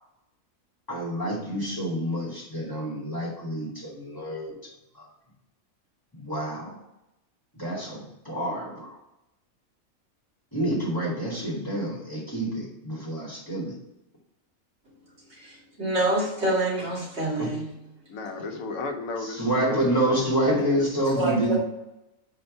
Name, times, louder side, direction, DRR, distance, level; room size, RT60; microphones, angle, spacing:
voice 1, 0.9-4.5 4.9-5.1 6.1-6.8 7.5-9.0 10.5-13.7 17.4-17.5 19.2-21.6, right 1 dB, 15° left, -5 dB, 2.3 m, -28 dB
voice 2, 15.3-17.7 21.2-21.6, right 1 dB, 55° right, -7 dB, 2.7 m, -27 dB
voice 3, 18.1-20.9, left 3 dB, 85° left, 4 dB, 1.3 m, -34 dB
4.8 x 4.4 x 5.3 m, 0.90 s
omnidirectional pair, 1.4 m